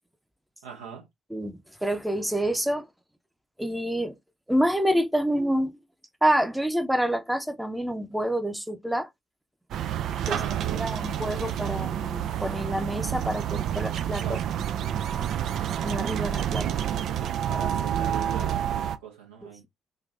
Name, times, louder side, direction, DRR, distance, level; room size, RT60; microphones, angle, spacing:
voice 1, 0.6-1.0 10.2-10.9 11.4-11.7 14.2-14.4 17.5-19.6, right 7 dB, 75° right, 0.9 m, -40 dB
voice 2, 1.3-2.9 3.6-4.2 4.5-5.8 6.2-9.1 10.3-10.4 10.7-14.2 14.6-15.0 15.8-16.7, right 1 dB, 5° right, 0.7 m, -27 dB
sound 1, 9.7-19.0, right 10 dB, 60° right, 0.3 m, -29 dB
3.8 x 2.5 x 2.5 m
figure-of-eight pair, 45°, 0 cm